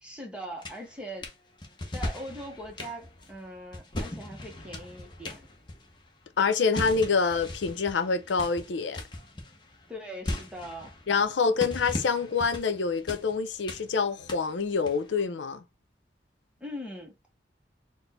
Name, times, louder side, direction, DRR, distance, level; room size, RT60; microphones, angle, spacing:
voice 1, 0.0-1.3 1.9-5.5 9.9-11.0 16.6-17.3, equal, 5° right, 0.8 m, -41 dB
sound 1, 0.6-1.3 1.6-6.2 6.5-15.2, left 1 dB, 25° left, 0.7 m, -39 dB
voice 2, 6.4-9.0 11.1-15.6, left 5 dB, 80° left, 0.5 m, -26 dB
4.1 x 2.1 x 4.1 m
head